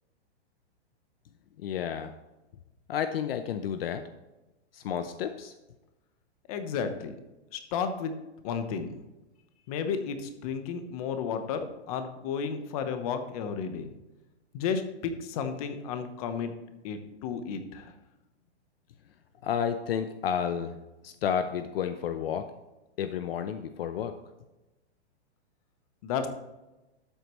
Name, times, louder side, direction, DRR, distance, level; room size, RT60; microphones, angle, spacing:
voice 1, 1.6-2.1 2.9-4.0 4.7-5.5 19.4-20.7 21.0-22.5 23.0-24.1, left 8 dB, 55° left, 9 dB, 0.7 m, -31 dB
voice 2, 6.5-7.1 7.5-8.1 8.4-8.9 9.7-13.9 14.5-16.5 16.8-17.9 26.0-26.3, left 6 dB, 30° left, 8 dB, 1.0 m, -32 dB
12.5 x 8.1 x 3.1 m, 1.0 s
hypercardioid pair, 165°, 34 cm